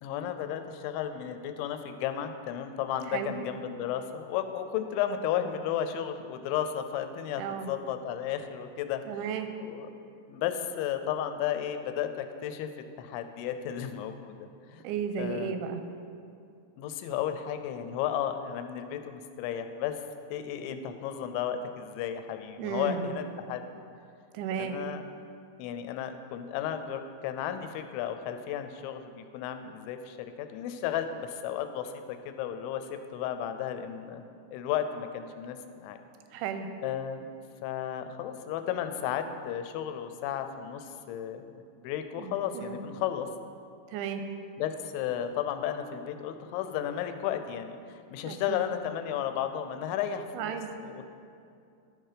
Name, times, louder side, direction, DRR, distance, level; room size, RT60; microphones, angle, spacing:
voice 1, 0.0-9.0 9.6-9.9 10.3-12.7 13.0-14.4 14.7-14.8 15.2-15.6 16.8-20.0 20.3-23.6 24.6-25.0 25.6-34.2 34.5-36.0 36.8-37.3 37.6-41.5 41.8-43.3 44.6-50.6 50.8-51.1, left 9 dB, 90° left, 8 dB, 2.9 m, -33 dB
voice 2, 7.4-7.7 9.1-9.5 14.8-15.8 22.6-23.1 24.3-24.8 36.3-36.7 42.2-42.8 43.9-44.2 48.3-48.6 50.3-50.8, right 7 dB, 85° right, 7 dB, 2.9 m, -34 dB
12.5 x 4.6 x 4.9 m, 2.5 s
omnidirectional pair, 5.2 m